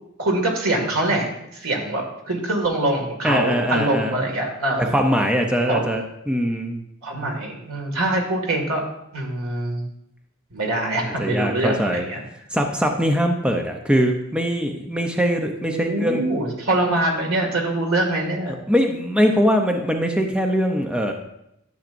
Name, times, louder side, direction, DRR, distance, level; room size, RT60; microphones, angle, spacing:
voice 1, 0.2-1.3 1.6-4.9 5.7-5.9 7.0-8.8 9.1-9.8 10.5-12.2 15.7-18.5, right 2 dB, 85° right, 1 dB, 2.1 m, -24 dB
voice 2, 3.2-4.3 4.8-6.8 11.2-12.0 12.5-16.2 18.7-21.1, equal, 5° right, 3 dB, 0.6 m, -22 dB
12.0 x 7.2 x 2.6 m, 0.81 s
head